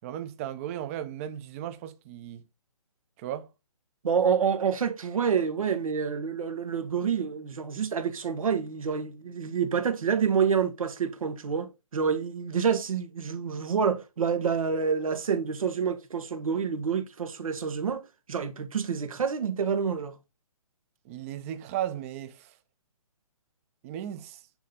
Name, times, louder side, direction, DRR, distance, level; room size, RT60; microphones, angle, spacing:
voice 1, 0.0-2.4 3.2-3.5 21.0-22.5 23.8-24.4, right 11 dB, 25° right, 0.9 m, -36 dB
voice 2, 4.0-20.2, right 6 dB, 70° right, 2.0 m, -28 dB
9.3 x 4.3 x 5.5 m
hypercardioid pair, 160°, 18 cm